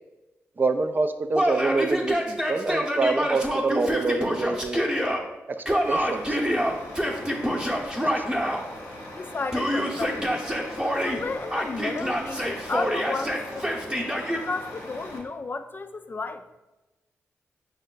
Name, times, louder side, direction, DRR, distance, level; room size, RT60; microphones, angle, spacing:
voice 1, 0.6-4.9 5.9-6.4 8.1-8.2, right 3 dB, 35° right, 9 dB, 0.3 m, -26 dB
Yell, 1.3-5.2 5.7-8.6 9.5-11.2 11.5-14.4, equal, 15° right, 0.8 m, -26 dB
Truck, 5.8-15.2, left 1 dB, 80° left, 1.0 m, -41 dB
voice 2, 9.1-10.4 11.0-16.4, left 3 dB, 40° left, 9 dB, 0.3 m, -33 dB
5.4 x 2.1 x 3.8 m, 1.1 s
supercardioid pair, 45°, 5 cm